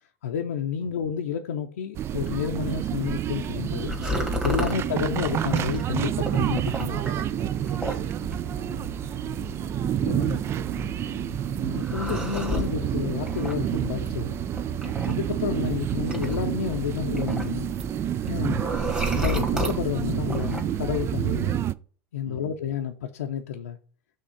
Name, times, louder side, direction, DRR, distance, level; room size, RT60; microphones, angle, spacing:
voice 1, 0.2-3.9 4.4-7.0 9.8-10.4 11.6-14.4 15.1-17.7 18.3-18.6 19.1-21.6 22.1-23.8, left 8 dB, 85° left, 0.6 m, -30 dB
sound 1, 1.9-21.7, right 11 dB, 35° right, 0.3 m, -29 dB
sound 2, 3.3-21.4, left 1 dB, 10° right, 1.7 m, -34 dB
voice 2, 6.9-8.9 10.1-11.5 22.2-22.6, right 5 dB, 70° right, 1.2 m, -43 dB
6.5 x 3.6 x 5.6 m
hypercardioid pair, 95°, 8 cm